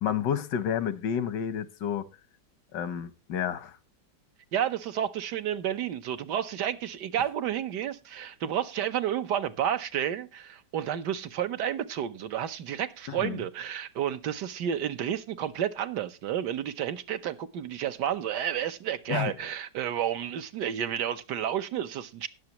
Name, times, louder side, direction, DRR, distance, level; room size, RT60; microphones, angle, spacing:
voice 1, 0.0-2.1 2.7-3.8 13.1-13.4 19.1-19.3, left 8 dB, 90° left, 1.6 m, -30 dB
voice 2, 4.5-22.3, right 10 dB, 75° right, 1.5 m, -31 dB
19.5 x 6.9 x 2.9 m
omnidirectional pair, 1.8 m